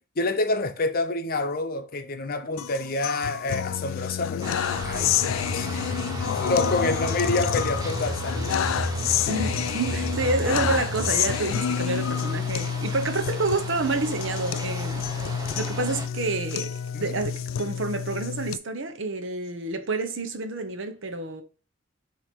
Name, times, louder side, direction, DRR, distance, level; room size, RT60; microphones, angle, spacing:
voice 1, 0.2-4.5 4.8-5.3 5.5-5.8 6.2-8.4 16.9-17.1, left 2 dB, 50° left, 0.7 m, -27 dB
sound 1, 2.6-18.6, left 9 dB, 85° left, 0.3 m, -29 dB
sound 2, 4.4-16.1, right 2 dB, 20° right, 0.9 m, -38 dB
sound 3, 4.6-11.2, equal, 50° right, 1.2 m, -32 dB
voice 2, 9.2-15.0 15.6-21.4, right 3 dB, 70° right, 0.9 m, -29 dB
8.0 x 2.9 x 4.4 m
head